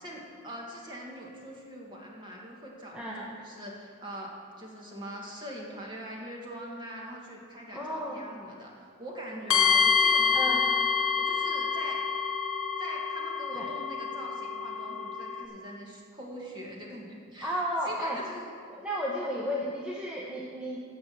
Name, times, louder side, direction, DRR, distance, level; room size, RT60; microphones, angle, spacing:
voice 1, 0.0-4.3 4.6-10.6 11.2-12.1 12.8-18.5, equal, 20° right, -2 dB, 2.0 m, -43 dB
voice 2, 2.9-3.3 7.7-8.2 10.3-10.6 13.5-13.7 17.4-18.2 18.7-20.8, equal, 5° right, -4 dB, 1.0 m, -33 dB
sound 1, 9.5-15.4, left 6 dB, 70° left, 1.7 m, -27 dB
15.5 x 5.3 x 7.6 m, 2.1 s
head